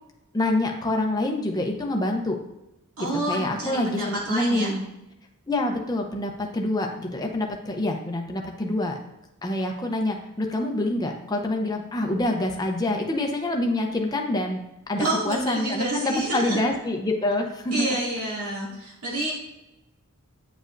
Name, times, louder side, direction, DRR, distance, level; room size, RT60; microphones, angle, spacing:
voice 1, 0.3-2.4 3.3-4.8 5.5-9.0 9.4-14.6 14.9-17.9, left 1 dB, 20° left, 2 dB, 0.6 m, -26 dB
voice 2, 3.0-4.7 15.0-16.6 17.7-19.3, right 2 dB, 85° right, -5 dB, 2.3 m, -28 dB
8.7 x 5.2 x 2.6 m, 0.92 s
head